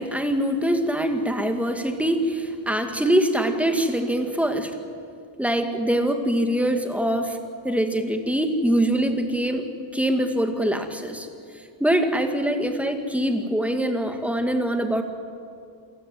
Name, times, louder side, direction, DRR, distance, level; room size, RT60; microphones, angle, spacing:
voice 1, 0.0-4.7 5.4-7.4 7.6-11.3 11.8-15.0, right 1 dB, 5° right, 6 dB, 2.3 m, -23 dB
27.0 x 16.5 x 9.4 m, 2.3 s
wide cardioid pair, 105°, 47 cm